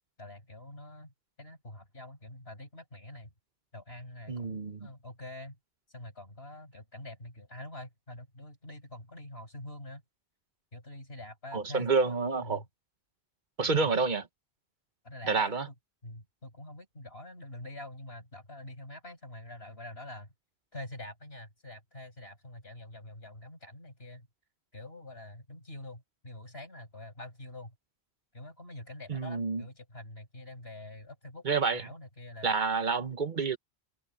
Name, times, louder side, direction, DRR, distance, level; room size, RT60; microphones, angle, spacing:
voice 1, 0.2-1.1 1.4-3.3 3.7-5.6 5.9-10.0 10.7-12.7 13.6-14.0 15.0-15.6 16.0-20.3 20.7-24.3 24.7-27.8 28.3-32.5, left 1 dB, 70° left, 7.3 m, -46 dB
voice 2, 4.3-4.9 11.5-12.6 13.6-14.2 15.2-15.7 29.1-29.6 31.4-31.8 32.4-33.6, right 4 dB, 50° right, 1.3 m, -28 dB
omnidirectional pair, 1.1 m